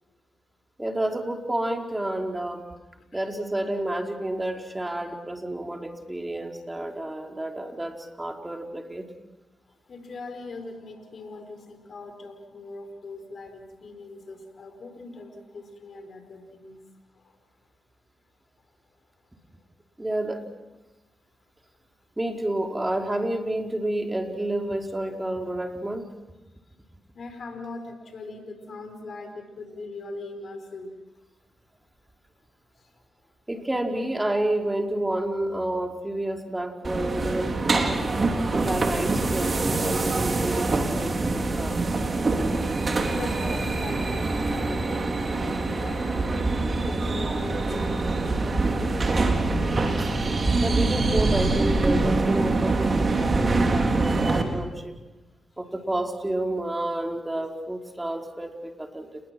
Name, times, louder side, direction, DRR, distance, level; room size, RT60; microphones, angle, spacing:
voice 1, 0.8-2.6 3.1-9.1 20.0-20.4 22.2-26.1 33.5-38.0 38.5-41.7 50.6-55.0 55.6-59.2, right 1 dB, 20° right, 2 dB, 4.7 m, -30 dB
voice 2, 9.7-16.8 17.1-17.4 27.1-30.9 32.8-32.9 43.0-46.5 46.8-49.0 49.8-50.1, left 3 dB, 65° left, 7 dB, 5.0 m, -41 dB
sound 1, 36.8-54.4, right 3 dB, 45° right, 3.9 m, -24 dB
30.0 x 21.5 x 6.2 m, 1.1 s
supercardioid pair, 40°, 0 cm